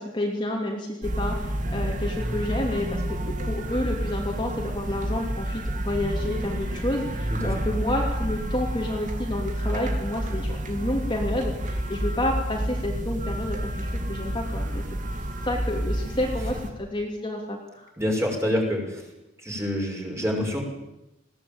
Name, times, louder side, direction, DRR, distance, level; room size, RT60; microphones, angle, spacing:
voice 1, 0.0-14.8 15.4-17.9, left 1 dB, 25° left, -1 dB, 2.9 m, -30 dB
sound 1, 1.0-16.7, right 1 dB, 40° right, 2.6 m, -29 dB
voice 2, 7.3-7.6 18.0-19.1 19.4-20.6, equal, 15° right, 0 dB, 5.9 m, -27 dB
20.5 x 17.0 x 8.9 m, 0.94 s
head